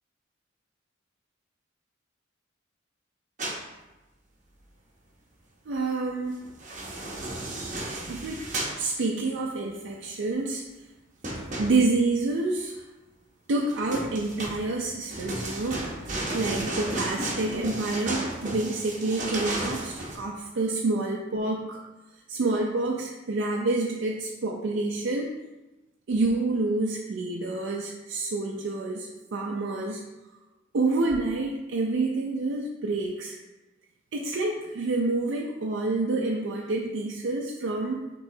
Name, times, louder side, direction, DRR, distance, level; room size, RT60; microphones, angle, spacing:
sound 1, 3.4-3.6 6.4-8.8 11.2-12.1 13.7-20.2, right 1 dB, 40° right, 0.8 m, -33 dB
voice 1, 5.7-6.4 8.1-8.4 8.8-10.6 11.6-12.8 13.5-21.8 22.3-25.3 26.1-30.0 30.7-33.3 34.1-38.0, right 2 dB, 70° right, -1 dB, 0.4 m, -28 dB
6.2 x 3.0 x 2.7 m, 1.1 s
head